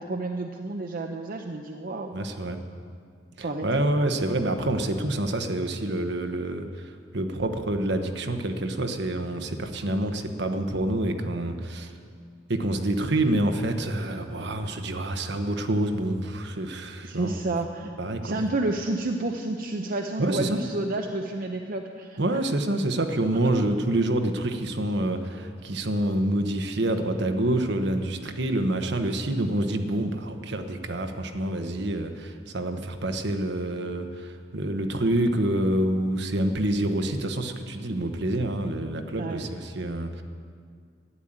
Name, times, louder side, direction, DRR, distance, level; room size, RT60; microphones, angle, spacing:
voice 1, 0.0-2.1 3.4-3.8 17.0-17.9 18.2-22.4 23.3-23.6 39.2-39.5, right 2 dB, 50° right, 3 dB, 0.8 m, -30 dB
voice 2, 2.1-2.6 3.4-11.9 12.5-17.4 18.0-18.3 20.2-20.6 22.2-40.2, right 1 dB, 65° right, 6 dB, 1.2 m, -27 dB
12.5 x 10.5 x 8.9 m, 2.2 s
head